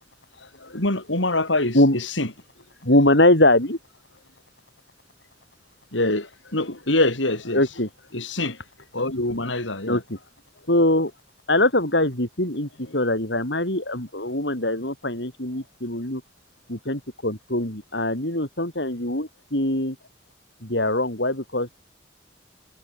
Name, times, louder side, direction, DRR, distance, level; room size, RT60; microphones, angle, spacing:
voice 1, 0.6-2.3 5.9-7.6 8.1-8.6 8.9-10.0, left 2 dB, 90° left, 5.8 m, -25 dB
voice 2, 2.8-3.8 7.5-7.9 9.9-10.2 10.7-11.1 11.5-16.2 16.7-19.9 20.6-21.8, left 1 dB, 70° left, 6.6 m, -22 dB
head